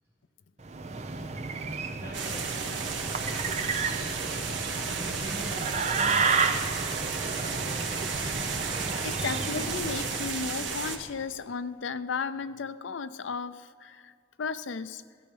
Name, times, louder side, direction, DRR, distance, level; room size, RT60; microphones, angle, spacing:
sound 1, 0.6-10.4, right 4 dB, 35° right, 0.7 m, -32 dB
sound 2, 0.9-8.7, right 2 dB, 60° right, 3.3 m, -53 dB
voice 1, 1.3-6.4, equal, 15° right, -5 dB, 1.9 m, -46 dB
sound 3, 2.1-11.0, right 5 dB, 85° right, 1.4 m, -33 dB
voice 2, 9.0-14.1 14.4-15.0, left 5 dB, 85° left, 13 dB, 0.5 m, -34 dB
16.0 x 12.0 x 5.3 m, 2.3 s
head